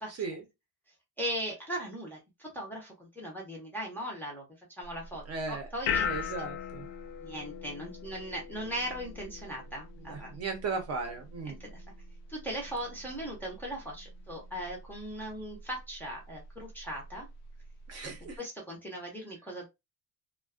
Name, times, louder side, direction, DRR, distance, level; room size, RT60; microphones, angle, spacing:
voice 1, 0.1-0.4 5.3-5.7 6.0-6.9 10.0-11.6 17.9-18.4, right 4 dB, 35° right, 0.7 m, -36 dB
voice 2, 1.2-4.4 4.8-6.3 7.2-10.3 11.6-11.8 12.3-17.3 18.0-19.7, equal, 5° left, 0.5 m, -39 dB
sound 1, 4.8-18.4, left 6 dB, 75° left, 0.5 m, -41 dB
2.4 x 2.3 x 2.3 m
cardioid pair, 150°, 42 cm